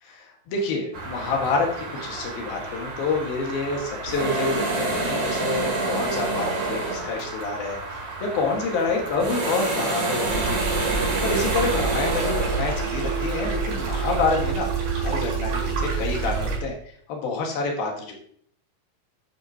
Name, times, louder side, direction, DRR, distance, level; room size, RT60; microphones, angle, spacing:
voice 1, 0.0-10.6 11.2-14.7 15.0-16.7 17.1-18.1, left 4 dB, 85° left, 0 dB, 3.6 m, -28 dB
sound 1, 0.9-14.5, right 3 dB, 50° right, 5.1 m, -29 dB
sound 2, 10.2-16.6, right 5 dB, 70° right, 5.1 m, -27 dB
11.5 x 8.2 x 2.9 m, 0.62 s
omnidirectional pair, 4.1 m